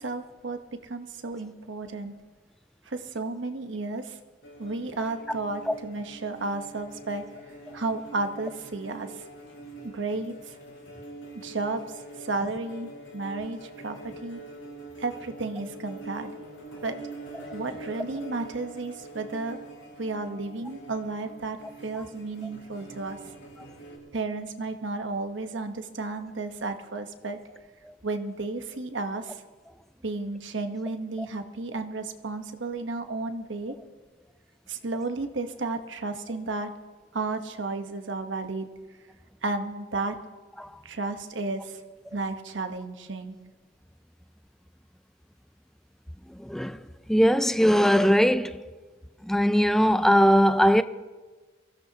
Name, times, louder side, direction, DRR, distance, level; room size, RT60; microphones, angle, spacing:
voice 1, 0.0-2.1 2.9-4.2 4.6-7.2 7.7-9.2 9.8-10.5 11.4-14.4 15.0-16.3 16.8-17.0 17.5-19.6 20.0-21.6 21.8-23.2 24.1-27.4 28.0-29.4 30.0-33.7 34.7-36.7 37.1-38.7 39.4-40.2 40.8-41.8 42.1-43.4, right 3 dB, 80° right, 1.1 m, -33 dB
sound 1, 4.4-24.0, right 2 dB, 85° left, 3.7 m, -44 dB
voice 2, 46.3-48.7 49.2-50.8, equal, ahead, 0.3 m, -21 dB
23.0 x 15.5 x 2.9 m
head